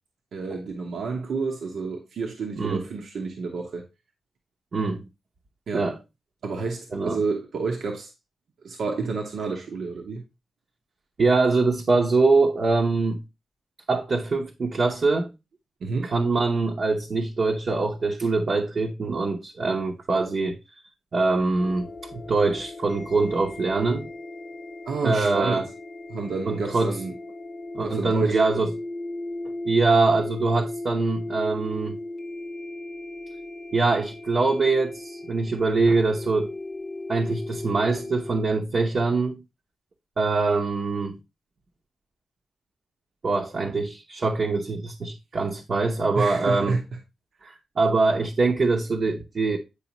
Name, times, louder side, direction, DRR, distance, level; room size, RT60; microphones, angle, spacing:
voice 1, 0.3-3.8 5.7-5.9 6.4-8.1 8.6-10.2 15.8-16.1 24.8-25.7 26.1-27.2 27.8-28.6 46.1-46.8, right 4 dB, 70° right, 1.1 m, -29 dB
voice 2, 4.7-5.0 5.7-6.0 6.9-7.2 11.2-13.2 13.9-15.3 16.0-20.6 21.1-24.1 25.0-25.7 26.5-27.0 27.7-28.7 29.6-32.0 33.7-36.5 37.1-39.4 40.2-41.2 43.2-46.8 47.4-49.6, right 3 dB, 45° right, 0.9 m, -23 dB
sound 1, 21.6-38.4, left 2 dB, 35° left, 0.8 m, -37 dB
8.5 x 4.8 x 2.9 m
wide cardioid pair, 115°, 0 cm